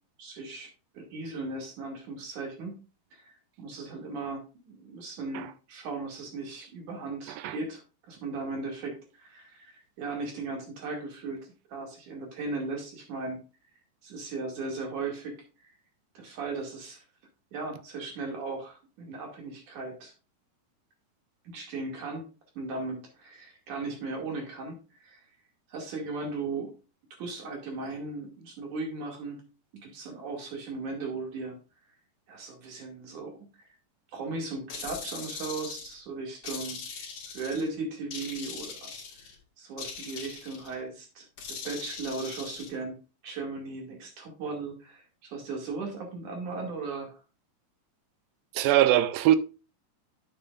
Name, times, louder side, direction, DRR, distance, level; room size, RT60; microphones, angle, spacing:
voice 1, 0.2-0.7 0.9-2.8 3.1-13.4 14.0-15.4 16.2-17.0 17.5-20.1 21.5-22.3 22.6-25.2 25.7-26.7 27.2-29.4 29.7-31.6 32.3-33.7 34.1-37.1 37.3-38.9 39.6-43.0 43.2-47.2, right 3 dB, 60° right, 3.7 m, -37 dB
sound 1, 34.7-36.0 36.4-37.7 38.1-39.3 39.8-40.7 41.4-42.7, left 5 dB, 45° left, 2.2 m, -41 dB
voice 2, 48.6-49.4, right 13 dB, 80° right, 2.3 m, -21 dB
11.0 x 7.0 x 2.5 m
omnidirectional pair, 4.2 m